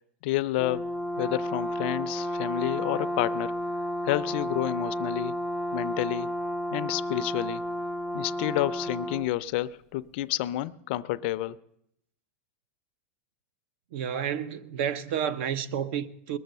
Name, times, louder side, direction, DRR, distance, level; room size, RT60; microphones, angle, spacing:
voice 1, 0.2-0.9 1.2-3.5 4.0-5.3 5.7-6.3 6.7-7.6 8.1-11.6, left 15 dB, 55° left, 0.4 m, -30 dB
Brass instrument, 0.6-9.3, equal, 5° right, 0.4 m, -32 dB
voice 2, 13.9-16.4, right 8 dB, 60° right, 0.7 m, -30 dB
20.5 x 6.9 x 6.6 m
supercardioid pair, 145°, 7 cm